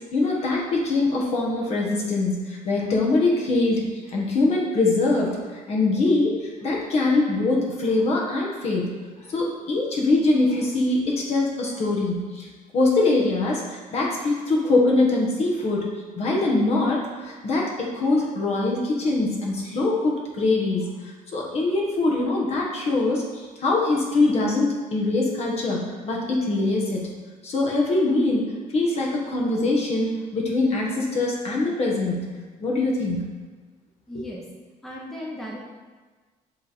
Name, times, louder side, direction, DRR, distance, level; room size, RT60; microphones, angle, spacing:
voice 1, 0.1-8.9 9.3-12.5 12.7-15.9 16.1-20.9 21.3-27.1 27.4-32.2 32.6-33.2 34.1-34.2, left 2 dB, 45° left, -1 dB, 1.2 m, -23 dB
voice 2, 34.1-34.5 34.8-35.6, left 1 dB, ahead, -4 dB, 0.7 m, -35 dB
7.7 x 3.3 x 4.2 m, 1.4 s
cardioid pair, 160°, 15 cm